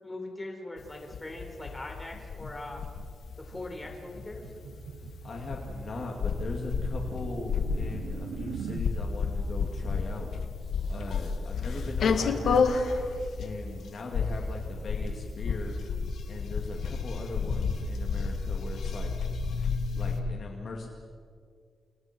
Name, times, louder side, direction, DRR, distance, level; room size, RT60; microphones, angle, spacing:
voice 1, 0.0-2.8 3.4-4.4, left 2 dB, 15° left, 1 dB, 4.6 m, -41 dB
sound 1, 0.8-20.2, left 5 dB, 65° left, 1.8 m, -31 dB
sound 2, 3.6-8.9, right 7 dB, 85° right, 1.0 m, -43 dB
voice 2, 5.2-10.3 10.9-12.9 13.4-15.8 16.3-19.1 19.9-20.9, left 3 dB, 45° left, 0 dB, 2.6 m, -39 dB
29.5 x 29.5 x 4.6 m, 2.1 s
wide cardioid pair, 155°, 0 cm